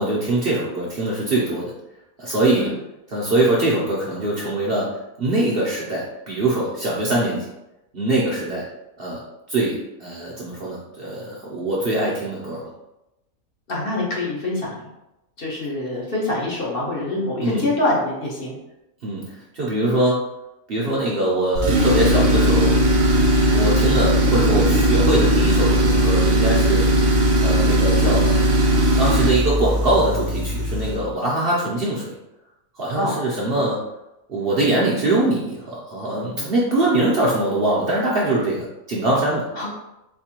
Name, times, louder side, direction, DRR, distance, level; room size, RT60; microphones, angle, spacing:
voice 1, 0.0-1.7 2.2-2.7 3.1-7.5 7.9-8.6 9.0-9.2 9.5-12.7 17.4-17.6 19.0-20.3 20.7-22.8 23.5-26.9 27.4-28.3 29.0-32.1 32.8-33.8 34.3-39.4, right 2 dB, 50° right, -5 dB, 0.8 m, -22 dB
voice 2, 13.7-14.8 15.4-18.5 32.9-33.1 39.5-39.7, left 2 dB, 45° left, -5 dB, 1.0 m, -25 dB
Tools, 21.6-31.0, equal, 70° right, 1.2 m, -18 dB
4.3 x 2.7 x 2.8 m, 0.91 s
omnidirectional pair, 1.5 m